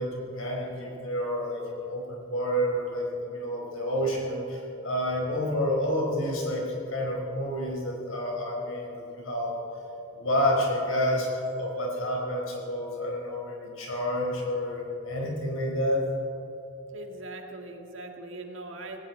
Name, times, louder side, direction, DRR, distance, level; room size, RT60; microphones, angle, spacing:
voice 1, 0.0-9.5 10.1-16.1, equal, 85° left, -1 dB, 4.7 m, -29 dB
voice 2, 16.9-19.0, right 2 dB, 65° right, 3 dB, 2.0 m, -40 dB
18.5 x 17.5 x 4.5 m, 3.0 s
head